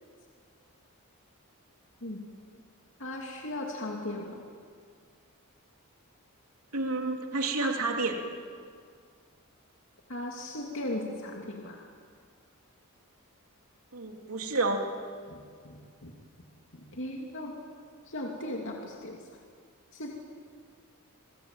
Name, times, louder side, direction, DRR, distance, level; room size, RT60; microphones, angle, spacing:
voice 1, 3.0-4.4 10.1-11.9 15.3-16.1 16.7-17.5 18.1-19.2 19.9-20.3, left 1 dB, 60° left, 0 dB, 2.8 m, -37 dB
voice 2, 6.7-8.2 13.9-14.8, right 3 dB, 80° right, 3 dB, 3.0 m, -29 dB
28.0 x 23.0 x 9.0 m, 2.1 s
head